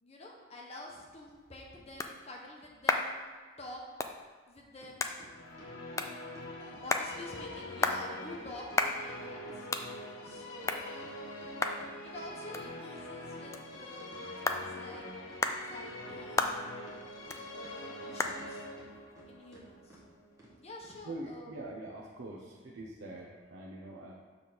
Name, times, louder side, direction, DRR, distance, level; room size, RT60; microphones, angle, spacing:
voice 1, 0.0-3.2 3.6-3.8 4.5-5.1 6.6-9.7 10.2-10.9 12.0-15.1 15.4-16.6 17.5-18.7 19.3-20.0 20.6-21.5, left 1 dB, 35° left, -1 dB, 0.9 m, -48 dB
sound 1, 1.1-20.4, left 3 dB, 15° left, 0.3 m, -38 dB
sound 2, 4.8-4.9 5.2-6.9 7.2-7.3 7.5-7.7 7.9-8.0 8.3-10.7 11.0-13.8 14.1-14.2 14.5-15.4 15.7-16.6 16.9-18.5 18.8-19.2 19.5-19.6 19.9-20.0 20.4-20.5 20.8-21.0, right 2 dB, 15° right, 1.4 m, -56 dB
Musical instrument, 5.2-20.6, left 1 dB, 85° left, 1.0 m, -45 dB
voice 2, 21.0-24.1, right 2 dB, 80° right, -3 dB, 0.8 m, -44 dB
6.9 x 3.5 x 6.0 m, 1.5 s
head